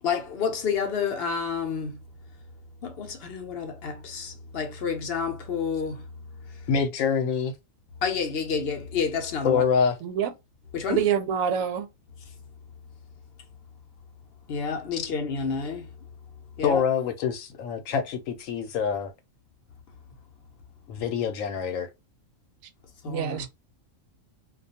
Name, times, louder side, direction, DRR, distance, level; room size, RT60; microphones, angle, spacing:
voice 1, 0.0-2.0 2.8-6.7 8.0-9.6 10.7-11.0 14.5-15.9 16.6-16.8 23.0-23.5, left 6 dB, 60° left, 0.8 m, -30 dB
voice 2, 6.7-7.5 9.4-9.9 16.6-19.1 20.9-21.9, left 6 dB, 80° left, 1.0 m, -25 dB
voice 3, 10.9-11.9 23.0-23.5, right 8 dB, 80° right, 1.0 m, -26 dB
2.4 x 2.2 x 2.7 m
omnidirectional pair, 1.4 m